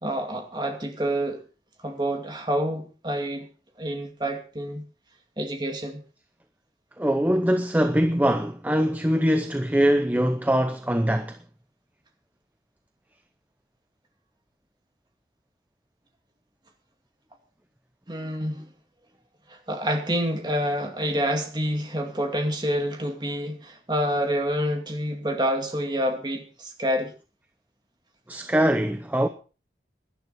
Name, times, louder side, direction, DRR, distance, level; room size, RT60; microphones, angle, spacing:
voice 1, 0.0-1.4 1.8-3.5 3.8-4.8 5.4-6.0 18.1-18.7 19.5-27.1, equal, 25° right, 2.3 m, -28 dB
voice 2, 7.0-11.4 28.3-29.3, equal, 10° right, 0.7 m, -22 dB
17.5 x 11.5 x 4.2 m
head